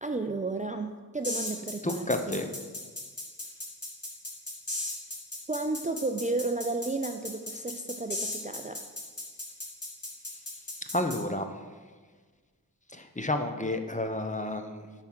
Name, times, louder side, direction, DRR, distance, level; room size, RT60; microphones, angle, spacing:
voice 1, 0.0-2.4 5.5-8.8, right 3 dB, 20° right, 6 dB, 0.4 m, -32 dB
sound 1, 1.2-11.2, left 2 dB, 40° left, 2.1 m, -36 dB
voice 2, 1.8-2.5 10.9-11.5 12.9-14.9, left 1 dB, 20° left, 6 dB, 0.7 m, -30 dB
9.4 x 4.4 x 6.2 m, 1.5 s
wide cardioid pair, 60°, 37 cm